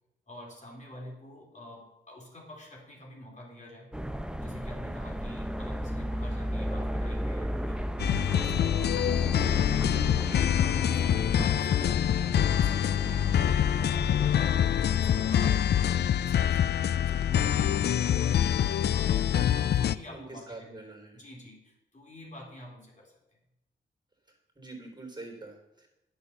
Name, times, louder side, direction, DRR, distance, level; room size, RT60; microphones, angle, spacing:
voice 1, 0.3-3.9 4.4-7.9 8.3-12.0 12.3-13.3 13.8-14.7 15.0-19.3 19.7-20.8 21.1-23.2, left 1 dB, 40° left, -2 dB, 3.8 m, -47 dB
sound 1, 3.9-15.5, equal, 5° right, 0.8 m, -35 dB
sound 2, 8.0-20.0, left 10 dB, 60° left, 0.4 m, -25 dB
voice 2, 20.1-21.2 24.6-25.9, right 2 dB, 20° right, 1 dB, 3.8 m, -45 dB
8.8 x 6.8 x 6.9 m, 0.91 s
supercardioid pair, 45°, 20 cm